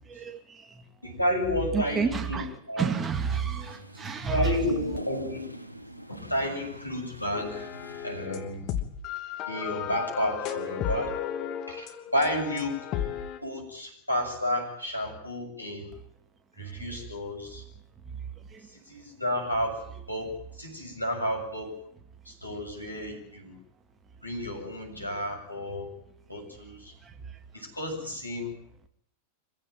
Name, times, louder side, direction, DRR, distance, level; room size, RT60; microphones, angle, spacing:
voice 1, 0.1-0.7 1.7-2.5 2.8-4.6 16.6-16.9 18.5-18.7 27.1-27.2, right 6 dB, 20° right, 8 dB, 2.4 m, -30 dB
voice 2, 1.0-2.9 4.3-5.5 6.1-7.7 8.0-8.7 9.5-11.1 11.7-12.8 13.4-15.9 16.6-17.6 18.7-19.8 20.1-21.8 22.3-23.6 24.2-25.9 26.3-26.9 27.5-28.5, left 1 dB, 85° left, 1 dB, 7.5 m, -31 dB
sound 1, 3.3-8.3, equal, 85° right, 1.6 m, -41 dB
sound 2, 7.3-13.4, left 10 dB, 35° left, 2.7 m, -34 dB
26.0 x 16.0 x 9.4 m, 0.71 s
figure-of-eight pair, 90°, 0 cm